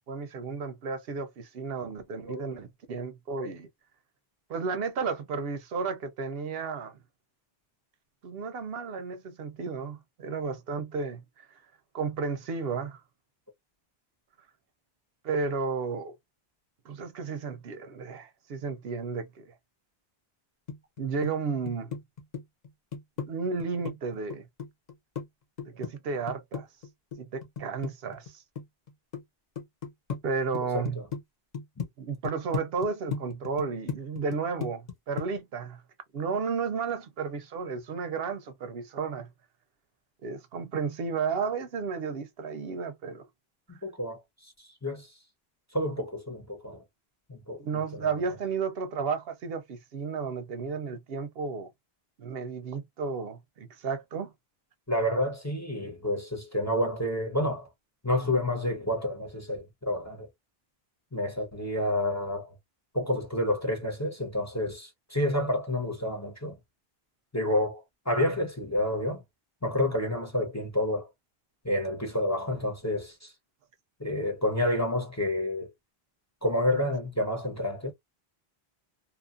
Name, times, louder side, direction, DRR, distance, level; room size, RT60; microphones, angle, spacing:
voice 1, 0.1-3.7 4.5-7.0 8.2-11.5 11.9-13.0 15.2-16.1 16.9-19.5 21.0-21.9 23.3-24.4 25.7-26.7 27.2-28.4 30.2-31.0 32.0-35.8 36.1-39.3 40.2-43.3 47.6-51.7 52.2-54.3, right 5 dB, 70° right, 0.8 m, -33 dB
sound 1, 20.7-21.3 21.7-23.3 23.6-25.3 25.6-28.3 28.6-29.2 29.6-30.2 30.5-31.2 31.5-31.9 32.2-34.9 35.2-35.4, left 6 dB, 45° left, 0.9 m, -35 dB
voice 2, 43.7-45.2 45.7-46.8 47.3-48.1 54.9-57.7 58.0-60.3 61.1-62.5 62.9-66.6 67.3-69.2 69.6-71.1 71.6-73.3 74.0-75.7 76.4-77.9, left 1 dB, 15° left, 0.9 m, -29 dB
2.8 x 2.4 x 2.5 m
omnidirectional pair, 1.0 m